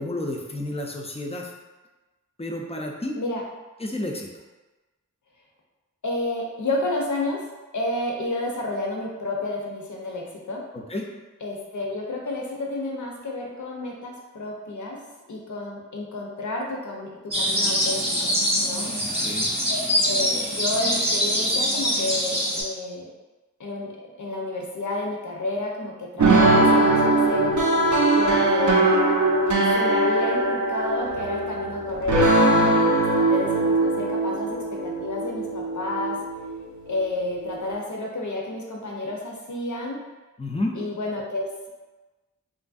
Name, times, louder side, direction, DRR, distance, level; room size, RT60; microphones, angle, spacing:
voice 1, 0.0-1.5 2.4-3.2 3.8-4.3 10.9-11.0 18.9-19.5 40.4-40.8, left 1 dB, 20° left, 0 dB, 0.4 m, -30 dB
voice 2, 6.0-7.4 7.7-10.6 11.4-15.0 15.3-17.1 17.3-18.3 18.6-18.9 19.7-23.0 23.6-23.9 24.2-27.5 28.1-28.9 29.7-36.2 36.9-40.0 40.7-41.7, left 2 dB, 75° left, -1 dB, 0.6 m, -30 dB
sound 1, 17.3-22.6, equal, 20° right, 0.7 m, -24 dB
sound 2, 26.2-37.6, right 2 dB, 70° right, 0.5 m, -21 dB
3.0 x 2.5 x 2.3 m, 1.2 s
wide cardioid pair, 45°, 31 cm